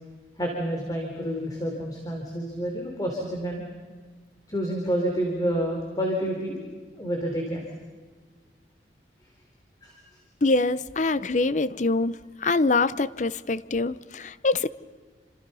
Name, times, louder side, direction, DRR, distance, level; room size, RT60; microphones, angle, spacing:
voice 1, 0.4-3.6 4.5-6.6 6.9-7.7 9.8-10.0, equal, 20° left, 0 dB, 3.7 m, -29 dB
voice 2, 10.4-12.1 12.4-14.7, left 3 dB, 45° left, 16 dB, 0.8 m, -24 dB
29.0 x 26.5 x 5.6 m, 1.4 s
head